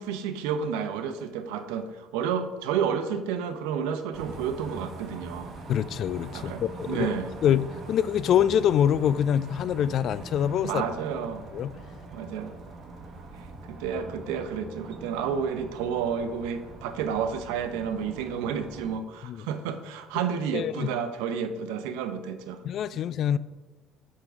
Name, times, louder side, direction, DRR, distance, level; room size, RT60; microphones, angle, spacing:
voice 1, 0.0-5.5 6.3-7.3 10.6-11.4 12.1-12.5 13.3-22.6 22.9-23.0, right 7 dB, 80° right, 0.7 m, -31 dB
sound 1, 4.1-19.0, right 2 dB, 50° right, 1.3 m, -43 dB
voice 2, 5.7-7.1 7.4-10.8 11.5-11.7 19.2-19.5 20.5-20.9 22.6-23.4, left 9 dB, 60° left, 0.3 m, -25 dB
8.0 x 3.8 x 5.9 m
supercardioid pair, 75°, 0 cm